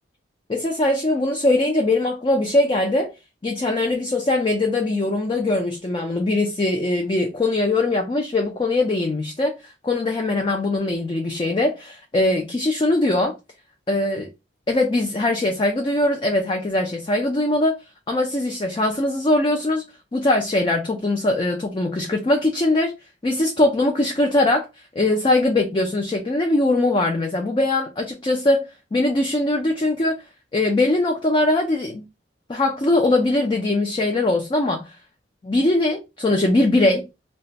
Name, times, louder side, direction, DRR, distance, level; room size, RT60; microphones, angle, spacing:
voice 1, 0.5-3.1 3.4-13.4 13.9-14.3 14.7-17.8 18.1-19.8 20.1-23.0 23.2-24.7 24.9-30.2 30.5-32.1 32.5-34.9 35.4-37.0, left 2 dB, 25° left, 0.4 m, -21 dB
2.5 x 2.3 x 3.9 m
head